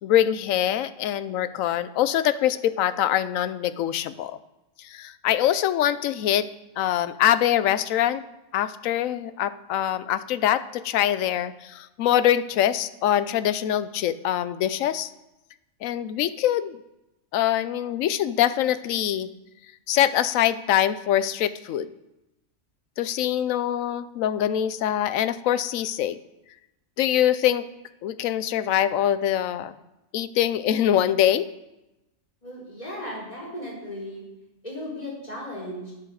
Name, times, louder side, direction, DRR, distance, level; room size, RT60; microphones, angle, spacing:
voice 1, 0.0-4.4 4.8-6.5 6.8-8.2 8.5-15.1 15.8-16.8 17.3-19.3 19.9-21.9 23.0-26.2 27.0-27.7 28.0-29.7 30.1-31.5, left 11 dB, 80° left, 15 dB, 1.0 m, -24 dB
voice 2, 32.4-34.2 34.6-35.9, left 1 dB, 30° left, -5 dB, 4.1 m, -36 dB
8.9 x 7.9 x 6.4 m, 0.94 s
omnidirectional pair, 1.4 m